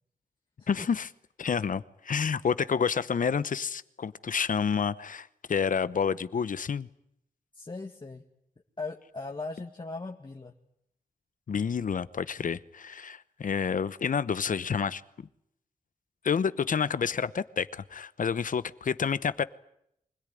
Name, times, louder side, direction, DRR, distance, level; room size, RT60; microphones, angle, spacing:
voice 1, 0.7-1.1 1.4-6.9 11.5-15.0 16.2-19.4, left 6 dB, 70° left, 16 dB, 0.9 m, -29 dB
voice 2, 7.5-8.2 8.8-10.5, left 3 dB, 35° left, 1 dB, 1.9 m, -39 dB
25.0 x 17.5 x 10.0 m, 0.77 s
cardioid pair, 65°, 14 cm